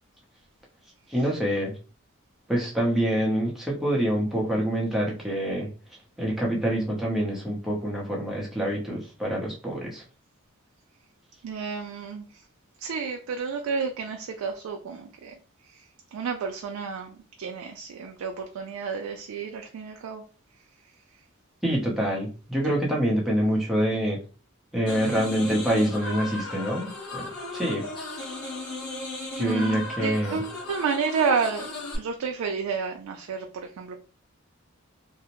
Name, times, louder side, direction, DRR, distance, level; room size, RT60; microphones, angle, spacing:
voice 1, 1.1-1.7 2.5-5.7 6.2-10.0 21.6-24.2 24.7-27.3 27.5-27.8 28.2-28.3 29.4-30.4, equal, ahead, 0.6 m, -26 dB
voice 2, 11.4-12.2 12.8-15.3 16.1-17.1 17.4-20.2 29.4-31.7 32.0-33.5 33.8-33.9, right 5 dB, 85° right, 0.3 m, -30 dB
sound 1, 24.8-32.0, left 2 dB, 75° left, 1.1 m, -36 dB
2.6 x 2.0 x 2.9 m
head